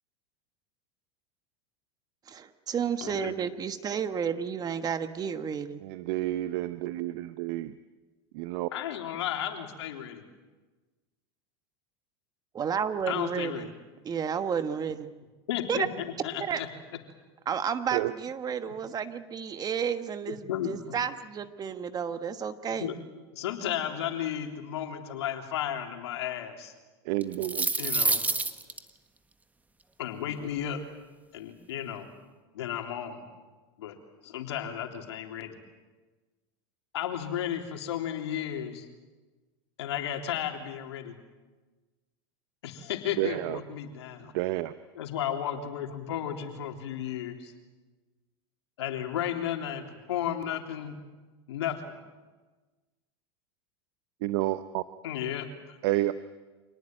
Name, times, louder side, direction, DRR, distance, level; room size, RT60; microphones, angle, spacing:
voice 1, 2.3-5.8 12.5-13.7 14.0-15.1 15.7-15.9 16.4-16.6 17.5-22.9, right 7 dB, 30° right, 10 dB, 1.4 m, -31 dB
voice 2, 3.0-3.3 8.7-10.2 13.1-13.7 15.5-16.7 20.3-21.0 22.7-23.0 23.3-26.7 27.8-28.2 30.0-30.8 31.3-32.1 32.5-33.2 33.8-34.0 34.2-35.5 36.9-38.9 39.8-41.2 42.6-44.3 44.9-47.5 48.8-51.0 51.5-51.9 55.0-55.8, left 10 dB, 85° left, 3 dB, 3.5 m, -34 dB
voice 3, 5.8-7.7 8.3-8.7 17.9-18.1 27.1-27.7 43.2-43.6 44.3-44.7 54.2-54.8 55.8-56.1, right 17 dB, 65° right, 12 dB, 0.9 m, -30 dB
sound 1, 27.2-28.8, right 3 dB, 10° right, 1.5 m, -27 dB
26.5 x 19.0 x 9.1 m, 1.3 s
supercardioid pair, 115°, 14 cm